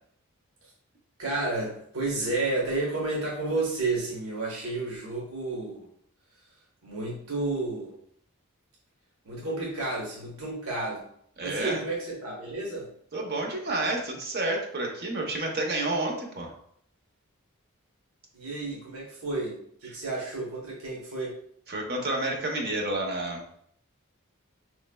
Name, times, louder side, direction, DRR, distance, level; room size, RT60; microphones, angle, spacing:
voice 1, 1.2-5.9 6.8-7.9 9.2-11.0 11.4-12.9 18.3-21.3, right 2 dB, 80° right, -3 dB, 1.0 m, -31 dB
voice 2, 11.4-11.8 13.1-16.5 21.7-23.4, right 2 dB, 45° right, 1 dB, 0.7 m, -30 dB
4.5 x 3.1 x 2.2 m, 0.66 s
head